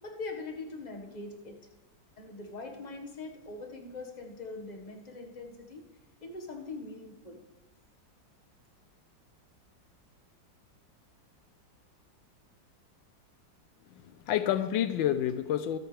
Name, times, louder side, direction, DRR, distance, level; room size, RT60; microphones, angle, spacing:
voice 1, 0.0-1.6 2.2-5.9 6.2-7.4, left 3 dB, 25° left, 2 dB, 1.5 m, -42 dB
voice 2, 13.9-15.8, left 10 dB, 80° left, 12 dB, 1.3 m, -29 dB
24.5 x 9.2 x 3.4 m, 1.1 s
omnidirectional pair, 2.1 m